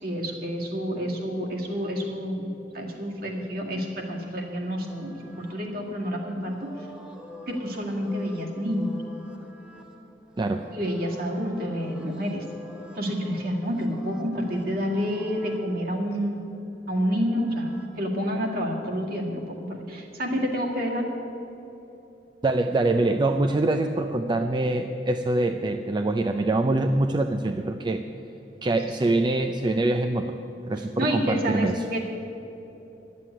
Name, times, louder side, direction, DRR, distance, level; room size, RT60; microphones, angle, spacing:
voice 1, 0.0-2.5 2.7-6.9 7.5-9.0 10.7-12.5 13.0-16.4 16.9-21.1 28.9-29.0 30.8-32.0, equal, 55° right, -1 dB, 2.0 m, -29 dB
sound 1, 4.0-15.7 16.8-17.9, left 1 dB, 5° right, 1.3 m, -48 dB
voice 2, 22.4-28.0 28.6-30.4 30.7-31.7, right 2 dB, 25° right, 5 dB, 0.4 m, -24 dB
11.5 x 7.6 x 9.9 m, 3.0 s
head